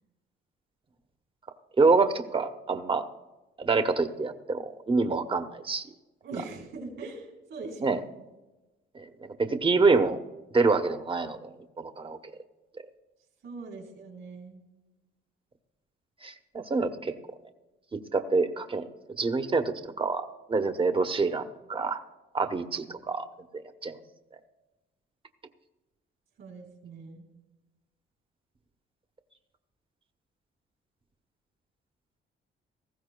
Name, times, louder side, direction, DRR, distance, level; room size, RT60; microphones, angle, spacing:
voice 1, 1.8-3.0 3.6-5.9 7.8-8.0 8.9-9.1 9.4-10.2 10.5-12.3 16.2-17.1 17.9-18.8 19.2-22.0 22.3-23.2 23.8-24.0, right 4 dB, 25° right, 8 dB, 1.0 m, -26 dB
voice 2, 6.2-8.0 13.4-14.6 23.0-23.2 26.4-27.3, right 3 dB, 65° right, 1 dB, 4.1 m, -41 dB
19.0 x 15.0 x 2.3 m, 1.1 s
cardioid pair, 90°, 20 cm